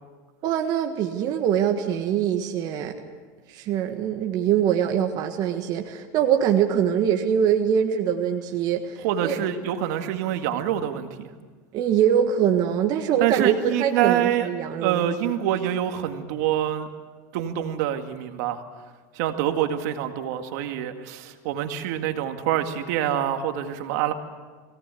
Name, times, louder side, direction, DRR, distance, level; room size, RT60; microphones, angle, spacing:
voice 1, 0.4-2.9 3.5-9.4 11.7-15.1, right 9 dB, 50° right, 4 dB, 1.6 m, -23 dB
voice 2, 9.0-11.3 13.2-14.5 14.8-16.9 17.3-18.6 19.1-24.1, right 11 dB, 70° right, 6 dB, 2.1 m, -26 dB
22.5 x 17.5 x 8.5 m, 1.4 s
supercardioid pair, 130°, 9 cm